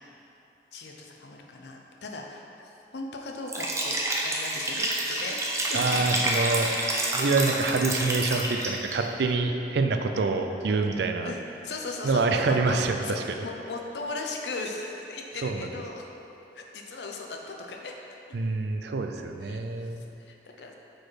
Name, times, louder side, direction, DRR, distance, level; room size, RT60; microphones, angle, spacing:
voice 1, 0.7-6.2 11.2-16.0 16.5-17.9 19.4-20.8, left 3 dB, 80° left, 1 dB, 0.6 m, -38 dB
Liquid, 3.5-8.9, right 1 dB, 15° right, 0.5 m, -28 dB
voice 2, 5.7-6.7 7.1-11.3 12.0-13.4 15.4-15.7 18.3-20.0, right 3 dB, 75° right, 5 dB, 0.4 m, -26 dB
4.7 x 4.3 x 4.6 m, 3.0 s
head